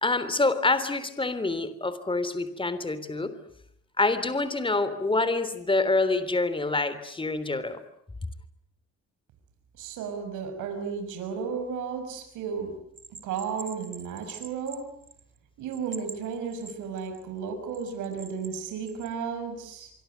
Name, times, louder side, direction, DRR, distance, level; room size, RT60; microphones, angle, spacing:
voice 1, 0.0-3.3 4.0-7.8, left 3 dB, 15° left, 13 dB, 3.4 m, -26 dB
voice 2, 9.8-12.7 13.2-14.9 15.6-19.9, right 6 dB, 90° right, 6 dB, 6.1 m, -33 dB
Bell, 13.0-15.4 15.7-17.2 17.7-19.1, right 4 dB, 40° right, 3.1 m, -44 dB
25.5 x 24.5 x 9.4 m, 0.71 s
cardioid pair, 90°, 30 cm